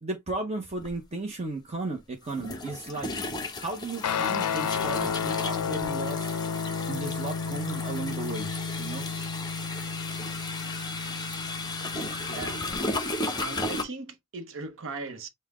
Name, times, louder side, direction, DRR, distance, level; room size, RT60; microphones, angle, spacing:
voice 1, 0.0-3.1 3.6-6.4 6.9-8.5 8.8-9.1, right 2 dB, 30° right, 0.7 m, -35 dB
sound 1, 0.8-0.9 2.3-13.8, left 2 dB, 20° left, 0.8 m, -35 dB
Guitar, 4.0-12.8, left 6 dB, 80° left, 0.4 m, -32 dB
voice 2, 12.1-12.7 13.4-15.3, right 3 dB, 60° right, 0.8 m, -38 dB
5.5 x 2.2 x 3.5 m
head